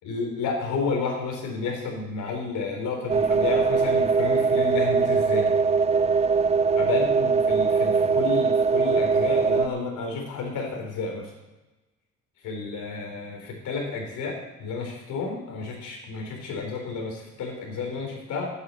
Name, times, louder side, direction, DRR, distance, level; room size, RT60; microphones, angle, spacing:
voice 1, 0.0-5.5 6.8-11.3 12.4-18.5, left 4 dB, 80° left, 1 dB, 3.6 m, -31 dB
sound 1, 3.1-9.7, right 5 dB, 20° right, 0.4 m, -21 dB
9.5 x 8.5 x 7.7 m, 1.1 s
cardioid pair, 90°, 30 cm